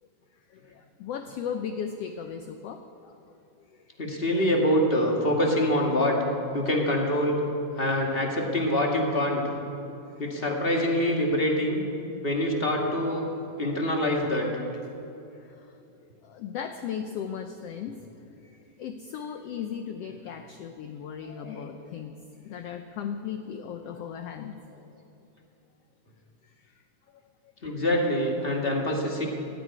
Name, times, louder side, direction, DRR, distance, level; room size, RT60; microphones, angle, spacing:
voice 1, 0.5-3.2 3.7-3.9 10.0-10.2 15.3-15.8 16.2-18.0 18.3-18.5 18.8-24.6 26.6-26.8 27.6-27.7, left 7 dB, 85° left, 7 dB, 1.3 m, -37 dB
voice 2, 4.0-6.2 6.5-7.3 7.8-9.4 10.2-11.8 12.2-13.2 13.6-14.5 21.2-21.6 27.6-29.3, left 1 dB, 25° left, 0 dB, 1.3 m, -25 dB
15.5 x 9.0 x 9.4 m, 2.8 s
omnidirectional pair, 3.6 m